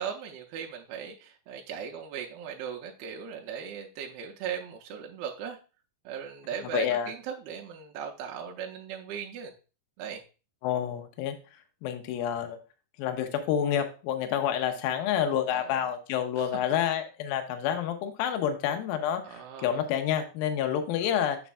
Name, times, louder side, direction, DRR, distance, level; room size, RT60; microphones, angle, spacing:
voice 1, 0.0-5.6 6.1-9.5 10.0-10.2 15.5-15.8 16.4-16.6 19.2-19.9 21.0-21.1, right 8 dB, 85° right, 0 dB, 2.4 m, -38 dB
voice 2, 6.7-7.1 10.6-11.3 11.8-12.6 13.0-21.4, left 9 dB, 75° left, 6 dB, 2.3 m, -28 dB
6.8 x 6.1 x 2.3 m, 0.33 s
omnidirectional pair, 5.0 m